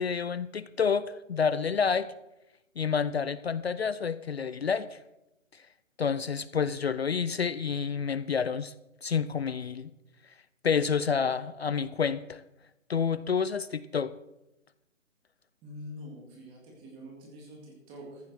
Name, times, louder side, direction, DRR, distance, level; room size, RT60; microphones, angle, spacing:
voice 1, 0.0-2.1 2.8-5.0 6.0-8.7 9.0-9.9 10.6-12.4 12.9-14.1, left 6 dB, 50° left, 15 dB, 0.5 m, -29 dB
voice 2, 15.6-18.3, left 1 dB, 15° right, -1 dB, 2.1 m, -45 dB
14.0 x 7.1 x 6.2 m, 0.93 s
hypercardioid pair, 165°, 40 cm